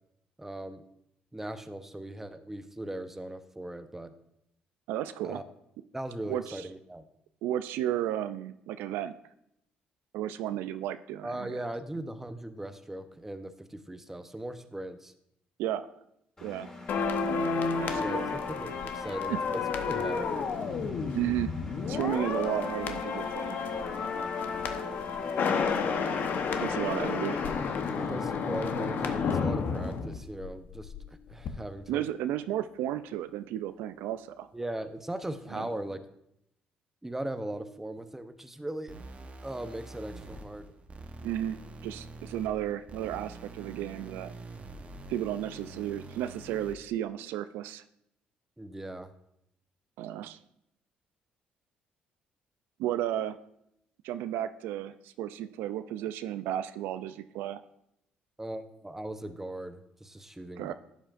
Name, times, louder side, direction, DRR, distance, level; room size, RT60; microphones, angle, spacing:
voice 1, 0.4-0.8 1.3-4.1 5.2-5.4 5.9-7.1 11.2-15.1 17.9-20.3 28.1-30.9 31.3-32.0 34.5-36.0 37.0-38.9 39.4-40.7 48.6-49.1 58.4-60.7, right 1 dB, 10° right, 10 dB, 0.7 m, -39 dB
voice 2, 4.9-5.4 6.3-6.7 7.4-9.1 10.1-11.7 15.6-15.9 16.4-16.7 17.8-18.3 19.3-19.4 21.1-21.5 21.9-23.7 26.6-27.4 31.9-34.5 35.5-35.7 41.2-41.6 41.8-44.3 45.1-47.8 50.0-50.4 52.8-53.4 54.0-57.6 60.6-60.7, right 12 dB, 85° right, 11 dB, 0.3 m, -33 dB
Engine, 16.4-28.1, left 2 dB, 20° left, 3.4 m, -46 dB
sound 1, 16.9-31.0 31.3-31.5, left 5 dB, 60° left, 0.9 m, -31 dB
sound 2, 38.9-46.9, right 2 dB, 40° right, 0.9 m, -46 dB
11.5 x 7.2 x 2.5 m, 0.78 s
supercardioid pair, 70°, 3 cm